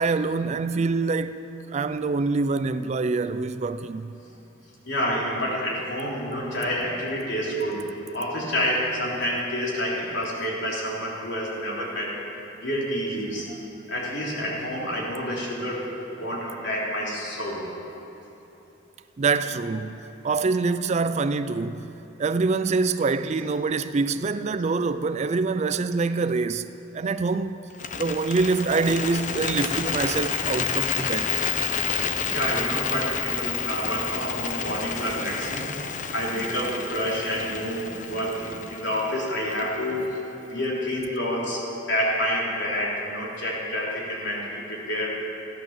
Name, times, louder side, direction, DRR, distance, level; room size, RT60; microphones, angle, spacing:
voice 1, 0.0-1.4 1.7-4.1 13.5-13.6 19.2-21.9 22.2-26.7 26.9-27.6 27.9-31.3, right 4 dB, 35° right, 0.4 m, -25 dB
voice 2, 4.8-12.2 12.6-13.5 13.9-17.7 32.3-40.2 40.4-45.1, equal, 65° left, 3.4 m, -28 dB
Bird, 27.7-39.9, left 6 dB, 40° left, 0.6 m, -30 dB
15.5 x 11.0 x 7.3 m
head